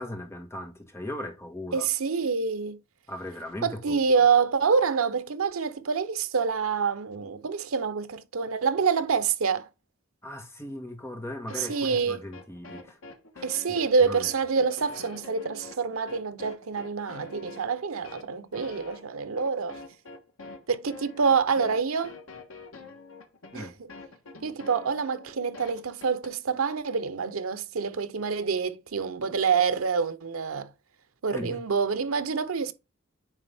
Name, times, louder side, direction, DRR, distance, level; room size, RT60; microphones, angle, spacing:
voice 1, 0.0-1.9 3.1-4.0 10.2-13.0 13.3-13.5 14.0-14.3 23.5-23.7 31.3-31.6, left 1 dB, 15° left, 1.4 m, -38 dB
voice 2, 1.7-2.8 3.6-9.7 11.6-12.2 13.4-19.8 20.7-22.2 23.5-23.7 24.4-30.7 31.2-32.7, right 5 dB, 85° right, 0.7 m, -26 dB
sound 1, 11.5-26.3, left 3 dB, 70° left, 1.3 m, -46 dB
9.4 x 3.4 x 3.4 m
head